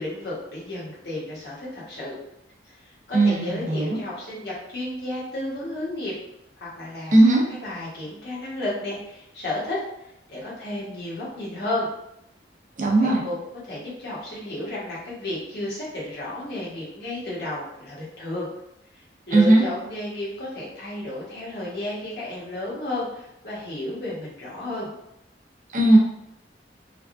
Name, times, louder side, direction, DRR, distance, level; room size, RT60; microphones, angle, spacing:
voice 1, 0.0-2.2 2.6-6.1 6.6-9.8 10.3-11.9 13.0-13.4 13.6-18.5 18.9-24.9, left 1 dB, 60° left, -6 dB, 1.1 m, -32 dB
voice 2, 3.1-4.0 7.1-7.4 12.8-13.2 19.3-19.6 25.7-26.0, right 2 dB, 45° right, -1 dB, 0.6 m, -17 dB
3.4 x 2.3 x 2.5 m, 0.82 s
head